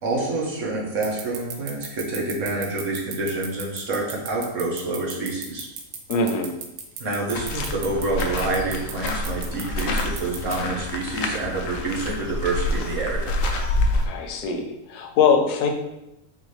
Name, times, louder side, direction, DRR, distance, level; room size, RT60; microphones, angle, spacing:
voice 1, 0.0-5.7 7.0-13.4, right 2 dB, 55° right, -3 dB, 1.2 m, -27 dB
sound 1, 1.0-10.6, right 7 dB, 80° right, 1.1 m, -34 dB
voice 2, 6.1-6.5 14.0-15.7, left 5 dB, 90° left, 3 dB, 1.2 m, -22 dB
sound 2, 7.3-14.1, left 2 dB, 65° left, 0.9 m, -27 dB
3.9 x 3.9 x 3.2 m, 0.91 s
omnidirectional pair, 1.6 m